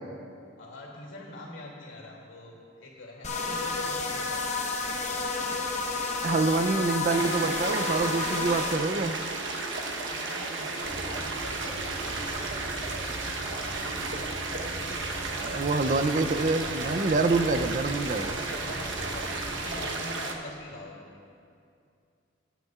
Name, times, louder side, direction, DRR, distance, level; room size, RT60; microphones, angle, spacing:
voice 1, 0.6-4.4 9.9-11.7 12.0-12.5 18.7-21.0, left 2 dB, 75° left, -2 dB, 2.5 m, -44 dB
sound 1, 3.2-8.8, left 3 dB, 35° left, 0.9 m, -31 dB
voice 2, 6.2-9.3 15.4-18.4, right 3 dB, 40° right, 9 dB, 0.4 m, -26 dB
sound 2, 7.1-20.3, right 3 dB, 70° right, 1.0 m, -33 dB
sound 3, 10.8-19.8, equal, 15° right, 1.0 m, -41 dB
20.5 x 9.1 x 2.4 m, 2.4 s
head